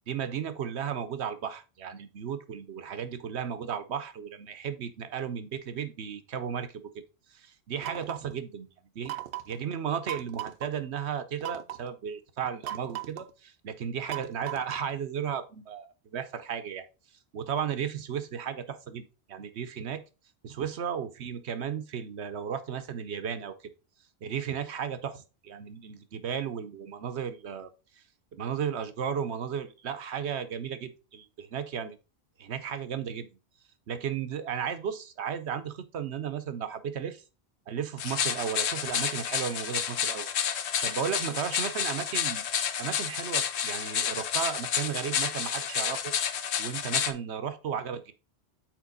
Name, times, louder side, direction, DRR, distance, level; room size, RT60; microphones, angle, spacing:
voice 1, 0.1-7.0 7.3-8.7 8.9-9.2 9.5-16.8 17.3-20.0 20.4-23.5 24.2-25.2 25.5-27.7 28.3-32.0 32.4-33.3 33.9-37.2 37.7-40.3 40.8-42.4 42.8-46.1 46.6-48.1, right 8 dB, 85° right, 11 dB, 1.1 m, -34 dB
sound 1, 7.8-8.3 9.1-9.6 10.1-10.7 11.4-11.9 12.6-13.3 14.1-14.9, right 13 dB, 65° right, 0.7 m, -38 dB
sound 2, 38.0-47.1, left 8 dB, 85° left, 1.0 m, -30 dB
7.4 x 4.5 x 3.9 m, 0.31 s
omnidirectional pair, 1.1 m